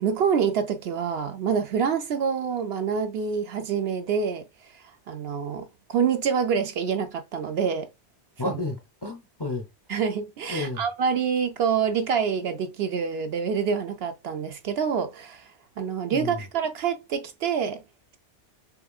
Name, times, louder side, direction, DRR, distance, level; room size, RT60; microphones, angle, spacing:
voice 1, 0.0-4.4 5.1-7.9 9.9-15.5 15.8-17.8, right 6 dB, 65° right, 0.8 m, -26 dB
voice 2, 8.4-9.7 10.5-10.8 16.1-16.4, left 2 dB, 25° left, 0.6 m, -31 dB
5.6 x 3.3 x 2.3 m
omnidirectional pair, 1.2 m